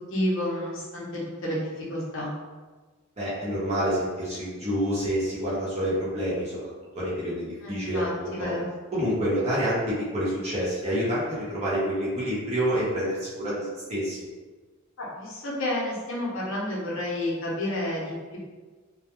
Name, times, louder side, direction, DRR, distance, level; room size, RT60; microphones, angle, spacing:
voice 1, 0.0-2.3 7.6-8.7 15.0-18.4, left 1 dB, 65° left, -5 dB, 0.7 m, -30 dB
voice 2, 3.2-6.5 6.9-8.5 8.9-14.2, equal, 30° right, -8 dB, 0.8 m, -28 dB
2.2 x 2.1 x 2.9 m, 1.3 s
head